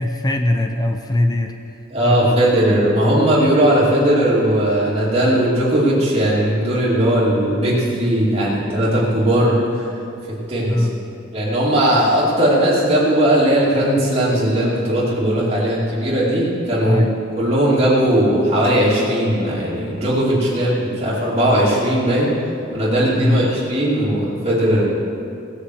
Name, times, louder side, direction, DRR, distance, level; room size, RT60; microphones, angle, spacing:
voice 1, 0.0-1.5 2.0-2.4 10.7-11.0 16.8-17.1 23.2-23.5, left 1 dB, 20° left, 5 dB, 0.7 m, -20 dB
voice 2, 1.9-9.9 10.5-10.9 11.3-17.0 17.4-22.3 22.7-24.8, right 1 dB, 30° right, -12 dB, 2.8 m, -18 dB
17.5 x 6.5 x 7.9 m, 2.6 s
head